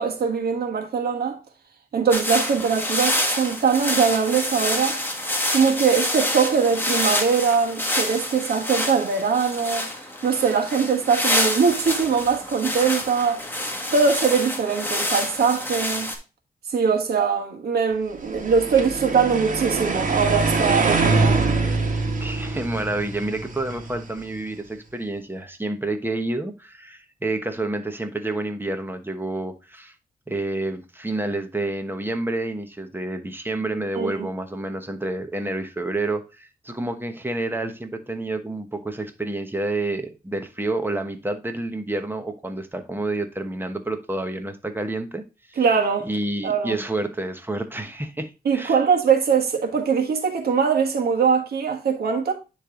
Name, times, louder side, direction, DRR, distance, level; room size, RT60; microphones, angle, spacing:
voice 1, 0.0-1.4 1.9-5.0 5.5-9.9 10.2-13.4 13.9-16.1 16.7-21.4 33.9-34.3 45.6-46.1 46.4-46.8 48.4-52.3, right 6 dB, 85° right, 1.5 m, -22 dB
sound 1, 2.1-16.2, left 1 dB, 15° left, 1.5 m, -27 dB
sound 2, 18.2-24.4, right 3 dB, 55° right, 1.6 m, -24 dB
voice 2, 22.2-29.9 30.3-45.2 45.5-45.6 46.0-48.8, right 2 dB, 15° right, 1.1 m, -29 dB
9.9 x 3.4 x 3.7 m
cardioid pair, 85°, 16 cm